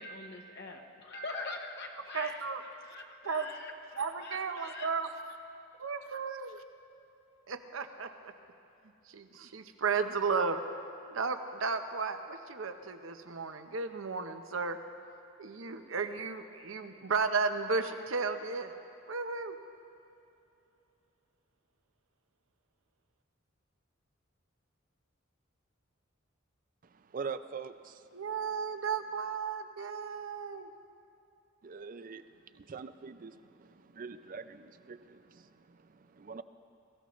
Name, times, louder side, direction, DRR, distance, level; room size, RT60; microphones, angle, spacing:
voice 1, 0.0-2.4 2.8-4.9, left 2 dB, 55° left, 2 dB, 1.0 m, -43 dB
voice 2, 2.1-2.6 3.2-3.6 4.0-5.4 5.8-6.6 7.5-8.3 9.1-10.6 11.1-14.8 15.4-18.7 19.1-19.5 28.1-30.7, right 5 dB, 80° right, 8 dB, 0.8 m, -34 dB
voice 3, 26.8-28.1 31.6-36.4, right 5 dB, 45° right, 12 dB, 0.4 m, -44 dB
22.5 x 14.5 x 3.1 m, 2.8 s
head